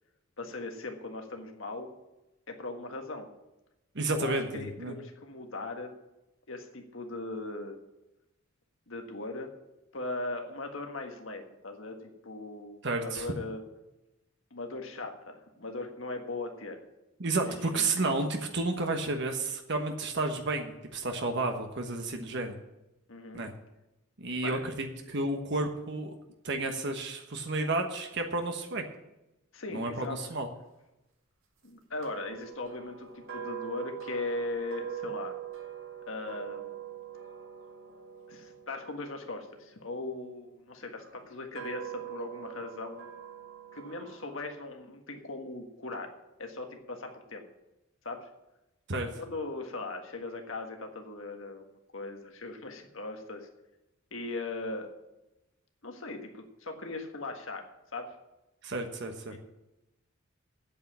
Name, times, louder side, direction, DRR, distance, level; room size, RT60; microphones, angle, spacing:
voice 1, 0.4-1.9 2.5-3.3 4.1-5.9 6.5-7.8 8.9-9.5 9.9-13.6 14.5-16.8 17.4-18.1 23.1-23.4 24.4-24.6 29.5-30.2 31.6-35.3 36.1-36.7 38.3-43.1 43.7-46.1 46.4-47.4 48.0-48.3 49.2-53.5 54.1-54.9 55.8-57.6 57.9-58.1 59.3-59.4, left 2 dB, 70° left, 4 dB, 1.6 m, -39 dB
voice 2, 3.9-5.0 12.8-13.3 17.2-22.5 23.3-23.5 24.2-26.1 26.4-28.8 29.7-30.5 48.9-49.1 58.6-59.3, right 2 dB, 60° right, 4 dB, 1.2 m, -31 dB
sound 1, 32.0-40.2 40.9-44.4, right 9 dB, 80° right, 2.1 m, -43 dB
8.5 x 8.3 x 8.6 m, 0.94 s
head